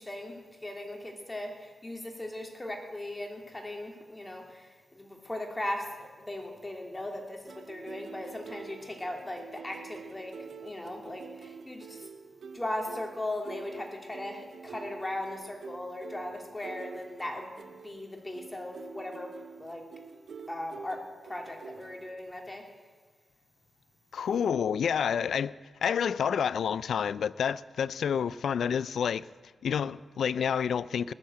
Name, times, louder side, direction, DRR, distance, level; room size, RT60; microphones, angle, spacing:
voice 1, 0.0-12.1 12.5-19.3 19.6-19.9 20.5-22.6, left 1 dB, 20° left, 2.8 m, -38 dB
sound 1, 7.4-22.2, right 6 dB, 80° right, 0.9 m, -47 dB
voice 2, 24.1-29.3 29.6-31.1, left 7 dB, 85° left, 0.3 m, -29 dB
20.0 x 7.3 x 7.8 m
supercardioid pair, 45°, 0 cm